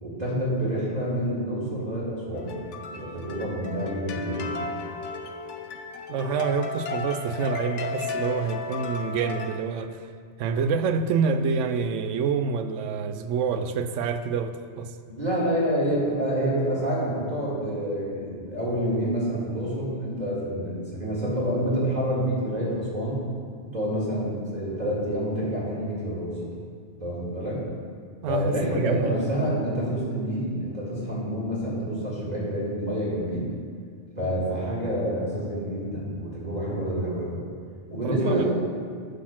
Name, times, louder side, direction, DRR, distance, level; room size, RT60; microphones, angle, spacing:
voice 1, 0.0-2.5 2.9-4.6 15.1-23.2 23.6-26.5 27.0-27.6 28.3-33.4 34.2-37.4 37.9-38.5, equal, 35° right, -7 dB, 2.2 m, -28 dB
sound 1, 2.3-9.6, left 4 dB, 75° left, 1.0 m, -34 dB
voice 2, 6.1-10.0 10.4-14.9 28.2-29.0 38.0-38.5, right 5 dB, 85° right, 9 dB, 0.9 m, -27 dB
9.8 x 4.2 x 5.9 m, 2.1 s
omnidirectional pair, 1.2 m